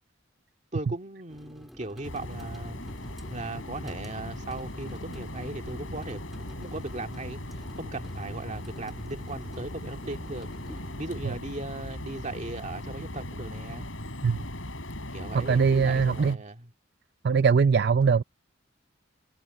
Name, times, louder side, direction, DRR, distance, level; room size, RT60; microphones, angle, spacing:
voice 1, 0.7-2.8 3.3-10.5 11.0-13.9 15.1-16.7, right 2 dB, 40° right, 2.2 m, -38 dB
sound 1, 1.3-12.8, equal, ahead, 2.7 m, -50 dB
sound 2, 2.0-16.4, left 1 dB, 90° left, 7.0 m, -39 dB
voice 2, 15.3-16.4 17.2-18.2, right 5 dB, 55° right, 0.5 m, -21 dB
head